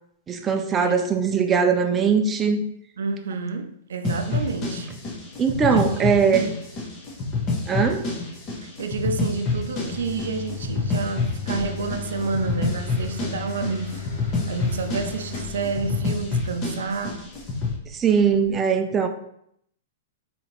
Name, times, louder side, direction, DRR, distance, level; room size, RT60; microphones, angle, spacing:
voice 1, 0.3-2.6 4.3-4.4 5.4-6.5 7.7-8.0 17.9-19.1, right 6 dB, 15° right, 0.3 m, -21 dB
voice 2, 3.0-4.9 5.6-6.5 8.6-17.3, right 4 dB, 85° right, 0.4 m, -30 dB
sound 1, 4.0-17.8, left 3 dB, 25° left, 0.7 m, -28 dB
sound 2, 9.9-18.5, left 6 dB, 55° left, 1.5 m, -37 dB
4.0 x 2.8 x 3.0 m
hypercardioid pair, 160°, 0 cm